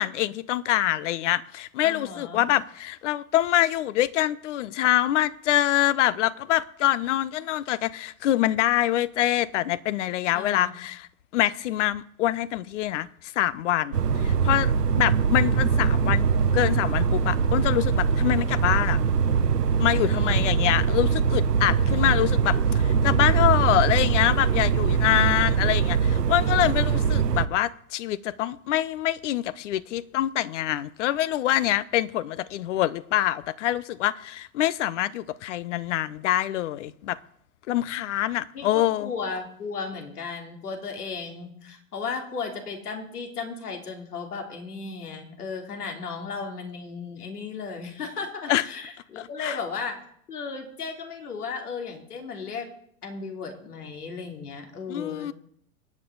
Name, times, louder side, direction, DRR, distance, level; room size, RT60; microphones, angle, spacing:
voice 1, 0.0-11.1 11.3-13.1 13.4-16.3 16.5-19.0 19.8-37.2 37.7-39.1 48.5-48.6 49.2-49.6 54.9-55.3, left 13 dB, 50° left, 0.9 m, -25 dB
voice 2, 1.8-2.5 10.3-10.8 20.1-20.5 21.8-22.5 38.5-50.0 50.3-52.7 53.0-55.3, left 5 dB, 75° left, 3.5 m, -35 dB
sound 1, 13.9-27.5, right 6 dB, 90° right, 1.0 m, -22 dB
25.0 x 9.6 x 4.0 m
hypercardioid pair, 115°, 46 cm